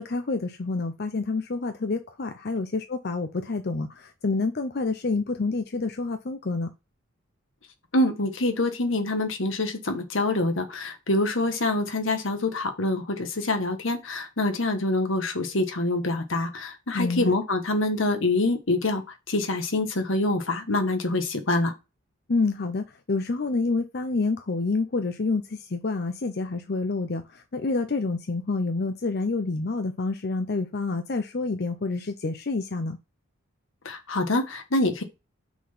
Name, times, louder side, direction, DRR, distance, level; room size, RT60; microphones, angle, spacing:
voice 1, 0.0-6.7 16.9-17.3 22.3-25.4 25.7-27.2 27.5-33.0, left 3 dB, 55° left, 0.7 m, -28 dB
voice 2, 7.9-19.0 19.3-21.7 33.8-35.0, left 2 dB, 80° left, 1.4 m, -25 dB
6.0 x 4.0 x 5.5 m
head